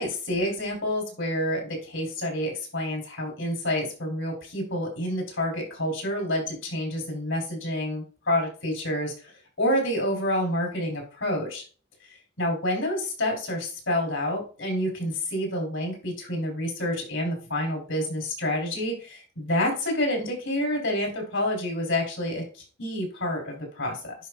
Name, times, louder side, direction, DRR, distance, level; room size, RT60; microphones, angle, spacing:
voice 1, 0.0-11.6 12.4-24.1, left 1 dB, 75° left, 1 dB, 3.5 m, -28 dB
10.5 x 4.5 x 2.4 m, 0.36 s
head